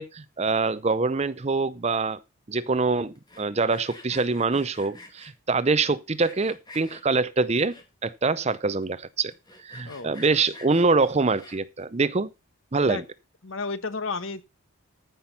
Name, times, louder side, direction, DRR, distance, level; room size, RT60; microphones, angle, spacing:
voice 1, 0.0-2.2 2.5-7.8 8.0-9.3 9.6-12.3 12.7-13.0, right 3 dB, 30° right, 0.5 m, -24 dB
Sawing, 3.2-5.3 5.8-7.0 7.5-8.1 8.5-8.6 8.8-8.9 9.3-11.8, left 2 dB, 20° left, 2.1 m, -48 dB
voice 2, 9.8-10.1 12.9-13.0 13.4-14.4, left 4 dB, 60° left, 1.2 m, -32 dB
14.5 x 6.0 x 5.6 m
head